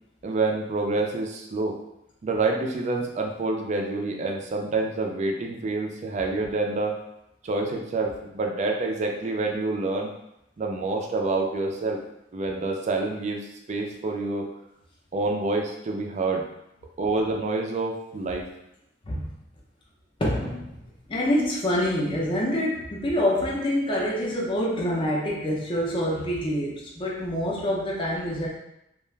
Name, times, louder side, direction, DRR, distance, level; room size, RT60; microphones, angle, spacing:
voice 1, 0.2-1.8 2.2-6.9 7.4-10.1 10.6-12.0 12.3-13.4 13.7-14.5 15.1-16.4 17.0-18.5, right 3 dB, 40° right, 2 dB, 0.3 m, -27 dB
voice 2, 20.2-28.5, equal, 25° left, -4 dB, 0.5 m, -26 dB
2.3 x 2.1 x 3.2 m, 0.83 s
head